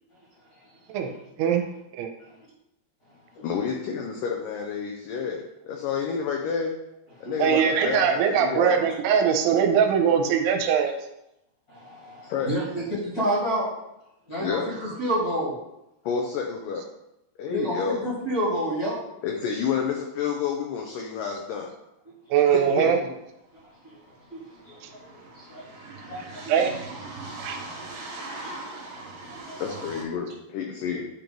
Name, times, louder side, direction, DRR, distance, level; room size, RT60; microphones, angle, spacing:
voice 1, 0.5-0.9 2.2-2.4 3.4-3.5 7.2-7.5 11.7-13.7 14.3-15.6 17.5-18.9 22.0-22.1 23.5-26.5 27.3-27.5 27.8-28.1 28.4-29.8, equal, 35° left, -6 dB, 1.7 m, -31 dB
voice 2, 3.4-6.7 7.2-8.8 12.2-12.5 14.4-14.7 16.0-16.8 17.4-18.1 19.2-21.7 22.5-22.9 28.3-28.4 28.7-28.8 29.6-31.1, left 6 dB, 85° left, 1 dB, 1.9 m, -29 dB
voice 3, 7.4-10.9 22.3-23.0 24.8-24.9 26.5-26.7 27.4-27.6, right 7 dB, 90° right, 5 dB, 2.7 m, -21 dB
sound 1, 23.5-23.6 23.8-30.0, right 2 dB, 65° right, 2.6 m, -40 dB
9.1 x 3.1 x 5.2 m, 0.86 s
omnidirectional pair, 4.7 m